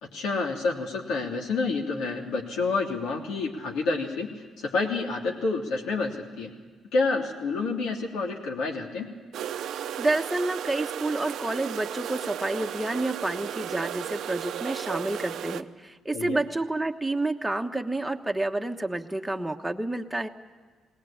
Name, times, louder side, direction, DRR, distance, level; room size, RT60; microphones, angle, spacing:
voice 1, 0.0-6.5 6.9-9.1 16.1-16.4, left 3 dB, 85° left, 0 dB, 3.2 m, -29 dB
sound 1, 9.3-15.6, right 10 dB, 75° right, 0.6 m, -34 dB
voice 2, 10.0-20.3, right 2 dB, 5° right, 3 dB, 1.3 m, -29 dB
20.0 x 18.5 x 8.8 m, 1.5 s
cardioid pair, 90°, 0 cm